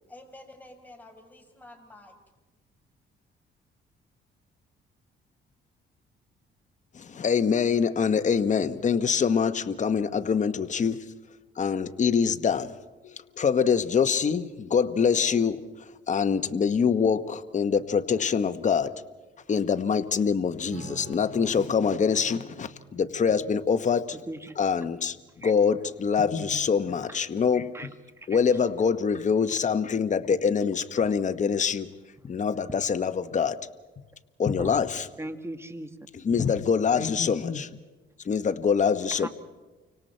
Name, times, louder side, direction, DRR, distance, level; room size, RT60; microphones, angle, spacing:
voice 1, 0.1-2.1, left 1 dB, 10° left, 3 dB, 5.7 m, -49 dB
voice 2, 6.9-11.0 11.6-12.7 13.0-15.6 16.1-18.9 19.5-24.2 24.6-25.2 25.4-27.7 28.3-31.9 32.2-33.6 34.4-35.0 36.2-37.7 38.2-39.3, left 6 dB, 40° left, 10 dB, 1.1 m, -24 dB
Acoustic guitar / Strum, 20.7-26.6, right 5 dB, 65° right, 5.3 m, -48 dB
voice 3, 35.2-36.0 39.2-39.3, right 1 dB, 15° right, 8 dB, 1.8 m, -38 dB
29.5 x 25.5 x 4.4 m, 1.2 s
cardioid pair, 90°, 20 cm